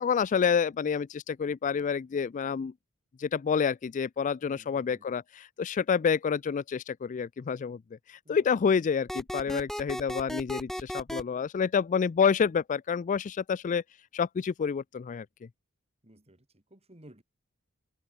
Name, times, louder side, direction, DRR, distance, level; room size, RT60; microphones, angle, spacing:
voice 1, 0.0-2.7 3.2-7.8 8.1-13.8 14.1-15.3, left 6 dB, 35° left, 0.3 m, -28 dB
voice 2, 4.5-5.1 8.3-8.5 9.5-9.6 16.0-17.2, right 1 dB, 30° right, 3.6 m, -55 dB
sound 1, 9.1-11.2, equal, ahead, 0.8 m, -35 dB
head